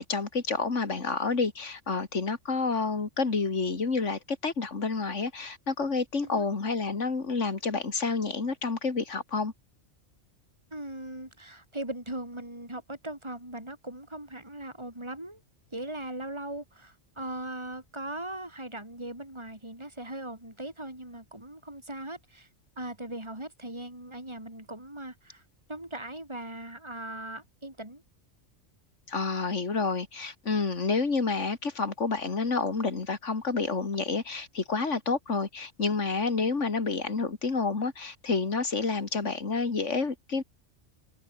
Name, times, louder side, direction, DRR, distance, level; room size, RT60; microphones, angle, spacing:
voice 1, 0.0-9.5 29.1-40.4, left 4 dB, 80° left, 2.8 m, -29 dB
voice 2, 10.7-15.4 15.7-22.5 22.8-25.4 25.7-28.0, right 1 dB, 20° right, 5.4 m, -39 dB
omnidirectional pair, 1.2 m